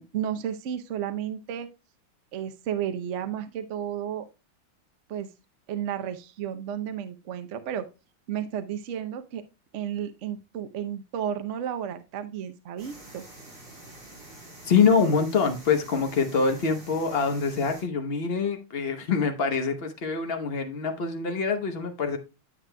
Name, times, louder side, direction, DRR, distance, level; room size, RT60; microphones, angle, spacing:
voice 1, 0.0-1.7 2.3-4.3 5.1-5.3 5.7-7.9 8.3-9.4 9.7-13.2, right 9 dB, 80° right, 9 dB, 0.6 m, -32 dB
sound 1, 12.8-17.8, right 1 dB, 50° right, 4.2 m, -47 dB
voice 2, 14.6-22.2, left 5 dB, 50° left, 4 dB, 0.7 m, -25 dB
9.8 x 7.5 x 2.2 m, 0.27 s
omnidirectional pair, 2.3 m